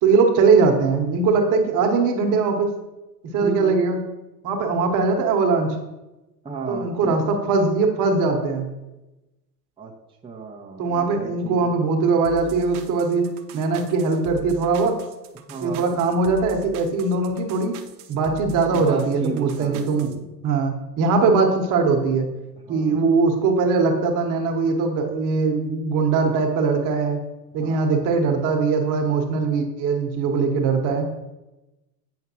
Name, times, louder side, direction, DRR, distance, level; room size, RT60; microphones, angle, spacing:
voice 1, 0.0-2.7 3.3-4.0 4.4-5.8 6.7-8.7 10.8-13.3 13.5-14.9 15.6-17.7 18.1-20.1 20.4-22.3 22.7-27.2 27.5-31.1, right 4 dB, 40° right, 3 dB, 1.4 m, -21 dB
voice 2, 3.4-3.8 6.4-7.3 9.8-9.9 10.2-11.7 15.5-15.9 18.7-20.3 22.7-23.3 27.6-28.0, right 4 dB, 10° right, -3 dB, 0.9 m, -33 dB
sound 1, 12.2-20.2, right 7 dB, 65° right, 0.9 m, -41 dB
8.4 x 5.7 x 3.0 m, 1.0 s
hypercardioid pair, 90°, 49 cm